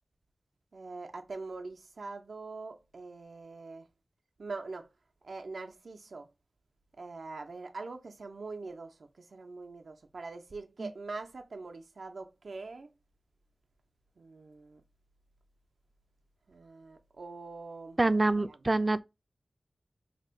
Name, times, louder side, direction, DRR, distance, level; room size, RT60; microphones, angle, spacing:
voice 1, 0.7-3.9 4.4-4.9 5.2-6.3 7.0-12.9 14.2-14.8 16.5-18.0 18.3-18.6, right 3 dB, 80° right, 0.6 m, -43 dB
voice 2, 18.0-19.0, right 2 dB, 35° right, 0.3 m, -26 dB
2.9 x 2.6 x 4.3 m
wide cardioid pair, 50°, 0 cm